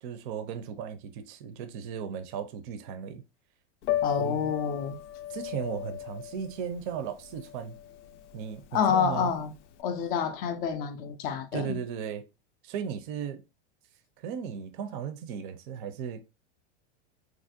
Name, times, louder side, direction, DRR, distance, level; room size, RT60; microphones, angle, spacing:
voice 1, 0.0-3.2 4.2-4.5 5.3-7.8 8.3-9.3 11.5-12.2 12.6-13.4 14.2-16.3, right 8 dB, 45° right, 0.5 m, -36 dB
Piano, 3.8-9.8, left 12 dB, 90° left, 0.5 m, -36 dB
voice 2, 4.0-5.0 8.7-9.5 9.8-11.8, left 7 dB, 25° left, 0.3 m, -28 dB
3.2 x 2.5 x 2.6 m
supercardioid pair, 140°, 34 cm